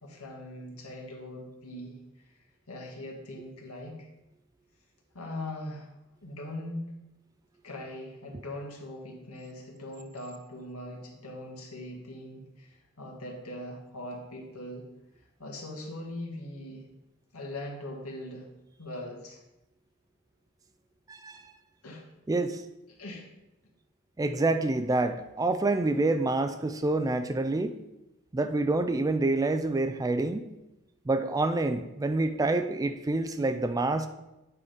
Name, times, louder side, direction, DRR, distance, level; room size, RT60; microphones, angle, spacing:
voice 1, 0.0-2.0 2.3-2.4 2.7-4.1 5.1-5.9 6.2-6.9 7.6-14.9 15.4-16.9 17.3-18.5 18.8-19.4 21.8-22.0 23.0-23.3, left 1 dB, 80° left, 0 dB, 1.8 m, -41 dB
voice 2, 21.1-21.4 22.3-22.6 24.2-27.8 28.3-30.5 31.1-34.1, right 2 dB, 15° right, 9 dB, 0.3 m, -27 dB
8.6 x 4.9 x 5.0 m, 0.95 s
head